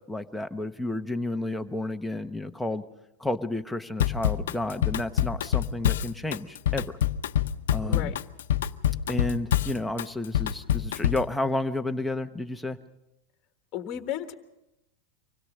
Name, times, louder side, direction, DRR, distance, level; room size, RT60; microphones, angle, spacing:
voice 1, 0.0-2.8 3.2-6.9 7.7-8.1 9.1-12.8, left 2 dB, 5° left, 6 dB, 0.9 m, -31 dB
Drum kit / Drum, 4.0-11.3, left 10 dB, 90° left, 0.7 m, -26 dB
voice 2, 7.8-8.1 13.7-14.3, left 11 dB, 35° left, 6 dB, 1.4 m, -33 dB
25.0 x 17.0 x 6.5 m, 0.91 s
supercardioid pair, 145°, 0 cm